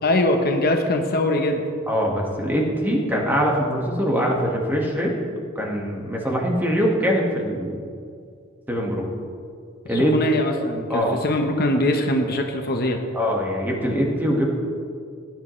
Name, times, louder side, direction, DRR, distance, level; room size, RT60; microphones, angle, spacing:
voice 1, 0.0-1.6 9.9-13.0, left 1 dB, 45° left, 3 dB, 0.9 m, -22 dB
voice 2, 1.9-5.1 5.5-7.7 8.7-9.1 9.9-10.2 10.9-11.2 13.1-14.5, equal, 10° right, -2 dB, 1.6 m, -23 dB
17.5 x 10.5 x 3.2 m, 2.3 s
head